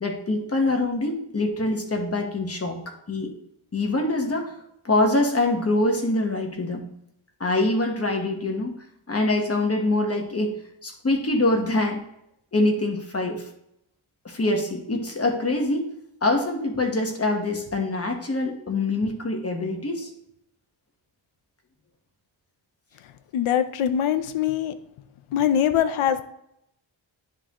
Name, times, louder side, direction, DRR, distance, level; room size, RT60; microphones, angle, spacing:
voice 1, 0.0-2.8 3.1-3.3 3.7-4.6 4.8-6.9 7.4-8.8 9.1-12.0 12.5-13.5 14.2-15.9 16.2-20.1, left 2 dB, 30° left, 3 dB, 1.1 m, -24 dB
voice 2, 23.3-24.7 25.3-26.2, left 9 dB, 80° left, 10 dB, 0.6 m, -22 dB
9.8 x 3.7 x 2.9 m, 0.77 s
wide cardioid pair, 110°, 49 cm